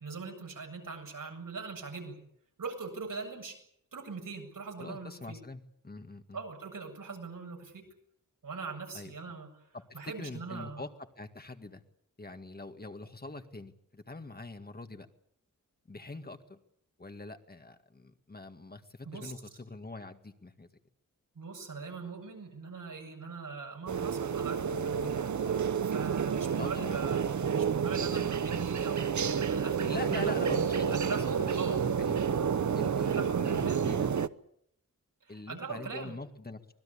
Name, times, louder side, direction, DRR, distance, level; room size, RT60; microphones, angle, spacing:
voice 1, 0.0-2.2 2.6-3.6 3.9-5.4 6.3-7.8 8.4-9.5 9.9-10.8 19.0-19.3 21.3-30.4 30.9-31.8 33.0-33.8 35.2-36.2, right 4 dB, 85° right, 3 dB, 7.7 m, -41 dB
voice 2, 4.8-6.4 8.9-9.2 9.9-10.9 11.2-11.8 12.2-15.1 15.9-16.6 17.0-20.7 26.6-27.0 29.8-32.2 32.7-34.1 35.3-36.6, left 2 dB, 30° left, 7 dB, 2.0 m, -43 dB
sound 1, 23.9-34.3, right 7 dB, 65° right, 0.9 m, -30 dB
25.0 x 20.0 x 8.6 m, 0.70 s
wide cardioid pair, 125°, 31 cm